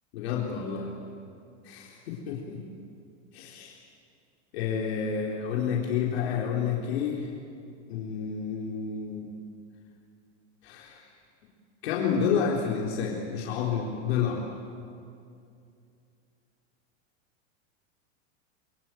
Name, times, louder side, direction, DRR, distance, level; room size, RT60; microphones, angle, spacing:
voice 1, 0.1-0.9 1.6-2.6 3.3-3.7 4.5-7.3 7.9-9.3 10.6-11.1 11.8-14.4, left 6 dB, 60° left, -3 dB, 3.9 m, -29 dB
27.0 x 23.5 x 9.2 m, 2.5 s
supercardioid pair, 175°, 36 cm